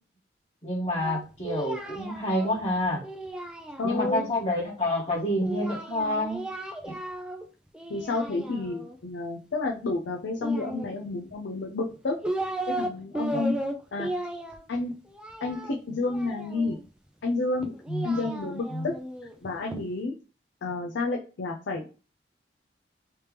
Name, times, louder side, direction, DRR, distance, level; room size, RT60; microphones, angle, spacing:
voice 1, 0.6-3.0 3.8-6.4 6.9-7.0 13.3-13.4 17.9-18.0 18.7-18.9, left 1 dB, 35° left, -11 dB, 1.3 m, -28 dB
Singing, 1.0-4.3 5.4-7.4 7.7-9.0 10.4-11.3 11.9-12.9 13.1-16.8 17.6-19.8, right 1 dB, 5° right, 0.4 m, -35 dB
voice 2, 3.8-4.2 7.9-12.2 12.8-13.6 13.9-14.1 14.7-14.9 15.4-16.8 17.2-17.7 18.0-18.9 19.4-20.1 20.6-21.8, left 3 dB, 85° left, 0 dB, 0.5 m, -30 dB
3.3 x 2.9 x 3.3 m, 0.35 s
head